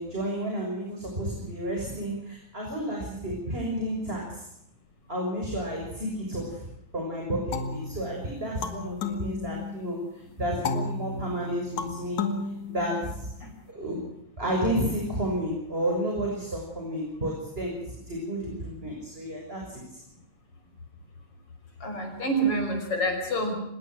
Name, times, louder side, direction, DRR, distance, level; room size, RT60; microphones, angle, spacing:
voice 1, 0.0-4.4 5.1-6.6 6.9-10.0 10.4-12.3 12.7-13.3 13.7-14.0 14.4-20.0, equal, 15° right, -1 dB, 6.5 m, -31 dB
sound 1, 7.5-10.0 10.6-13.4, left 4 dB, 65° left, 3.3 m, -33 dB
voice 2, 21.8-23.5, right 2 dB, 45° left, 5 dB, 6.5 m, -27 dB
26.0 x 21.0 x 6.3 m, 0.83 s
omnidirectional pair, 3.7 m